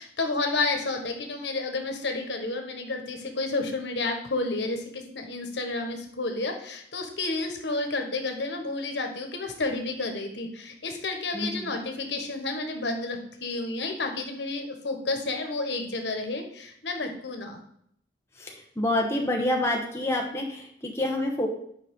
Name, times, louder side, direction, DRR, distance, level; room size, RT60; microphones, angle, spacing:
voice 1, 0.0-17.6, left 3 dB, 80° left, 4 dB, 1.2 m, -31 dB
voice 2, 11.3-11.7 18.4-21.5, left 1 dB, 15° left, 0 dB, 1.0 m, -27 dB
9.2 x 5.4 x 3.6 m, 0.69 s
head